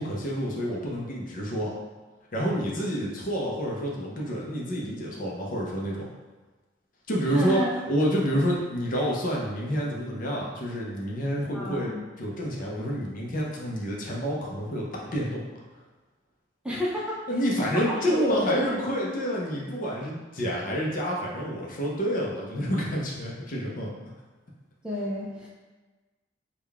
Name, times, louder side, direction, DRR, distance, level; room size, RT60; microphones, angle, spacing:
voice 1, 0.0-1.8 2.3-6.1 7.1-7.6 7.9-15.4 17.3-23.9, equal, 45° left, -3 dB, 0.6 m, -28 dB
voice 2, 7.3-7.7 11.5-12.1 16.6-17.2 17.7-18.7 24.8-25.5, left 1 dB, 5° right, -5 dB, 0.5 m, -30 dB
3.6 x 2.3 x 3.4 m, 1.2 s
head